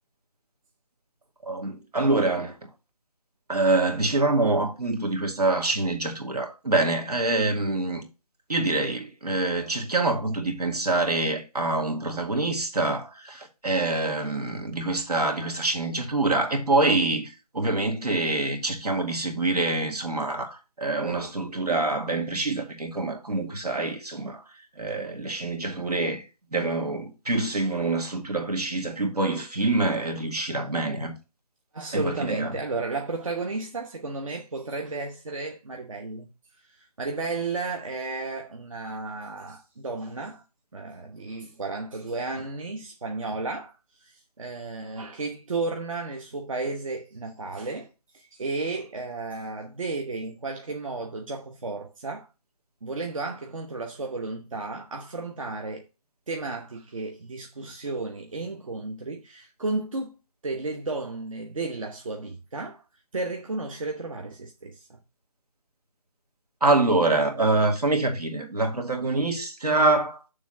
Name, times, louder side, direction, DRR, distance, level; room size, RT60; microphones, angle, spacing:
voice 1, 1.5-2.5 3.5-8.0 8.5-24.4 24.8-26.2 26.5-31.1 31.9-32.5 66.6-70.2, right 2 dB, 80° right, 2.3 m, -25 dB
voice 2, 31.7-36.3 36.6-40.4 40.7-47.9 48.1-52.3 52.8-55.8 56.3-60.1 60.4-62.8 63.1-65.0, right 3 dB, 55° right, 1.1 m, -33 dB
7.0 x 3.7 x 6.0 m
figure-of-eight pair, 160°, 20 cm